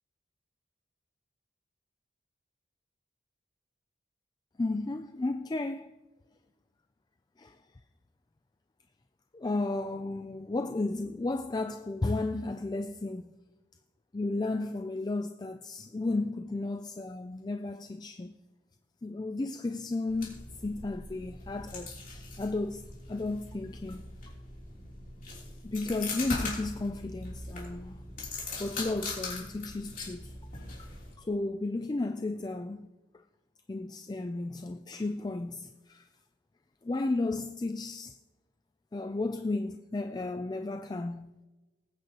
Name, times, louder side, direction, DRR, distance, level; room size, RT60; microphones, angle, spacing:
voice 1, 4.6-5.9 7.4-7.6 9.3-13.3 14.1-18.4 19.0-24.0 25.6-28.0 28.6-30.3 30.8-30.9 31.2-32.9 33.7-36.1 36.8-38.2 38.9-41.4, left 2 dB, 20° left, 0.3 m, -33 dB
sound 1, 20.1-31.1, left 3 dB, 45° left, 3.3 m, -41 dB
19.5 x 9.2 x 2.9 m
head